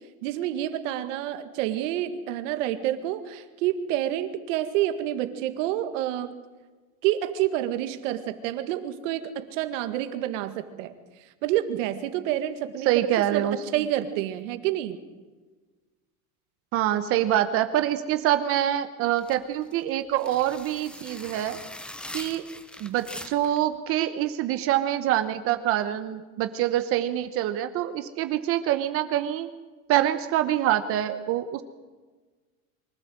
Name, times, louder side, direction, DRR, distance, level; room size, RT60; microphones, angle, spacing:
voice 1, 0.2-6.3 7.0-10.9 11.4-15.0, right 12 dB, 65° right, 9 dB, 2.0 m, -28 dB
voice 2, 12.8-13.6 16.7-21.6 22.1-22.4 22.8-29.5 29.9-31.6, right 12 dB, 35° right, 9 dB, 0.9 m, -25 dB
sound 1, 19.1-23.6, left 1 dB, ahead, 0.6 m, -42 dB
24.0 x 15.0 x 7.8 m, 1.3 s
cardioid pair, 170°, 40 cm